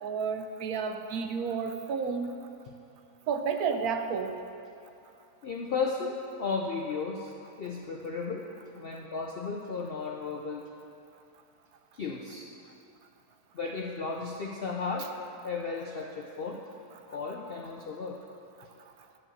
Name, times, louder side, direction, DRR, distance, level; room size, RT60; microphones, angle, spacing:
voice 1, 0.0-2.3 3.3-4.3, right 5 dB, 70° right, 6 dB, 1.1 m, -31 dB
voice 2, 5.4-7.3 7.6-8.5 8.8-10.7 11.9-12.5 13.5-15.1 15.4-16.6 17.1-18.2, left 4 dB, 65° left, 0 dB, 0.6 m, -34 dB
10.5 x 5.2 x 7.1 m, 2.6 s
omnidirectional pair, 1.7 m